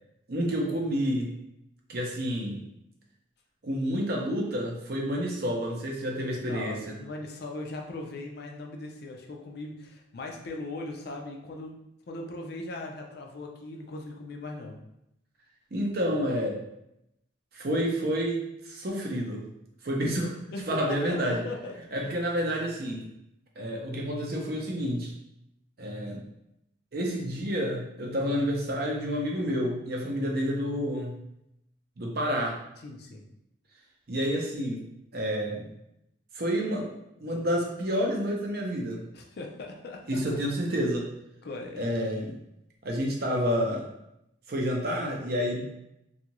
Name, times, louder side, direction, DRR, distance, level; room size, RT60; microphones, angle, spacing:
voice 1, 0.3-1.3 1.9-2.6 3.6-6.9 15.7-16.6 17.5-19.4 19.8-20.3 20.7-21.4 21.9-23.0 23.6-25.1 25.8-26.2 26.9-31.1 32.0-32.6 34.1-34.8 35.1-35.7 36.3-36.9 37.2-39.0 40.1-41.1 41.8-42.3 42.8-43.9 44.5-45.6, equal, 50° right, -1 dB, 0.6 m, -29 dB
voice 2, 6.5-11.7 12.1-14.8 20.5-20.8 21.1-21.8 22.0-22.1 32.8-33.2 39.1-40.4 41.4-41.9, left 2 dB, 55° left, 1 dB, 0.4 m, -39 dB
2.7 x 2.4 x 2.9 m, 0.83 s
head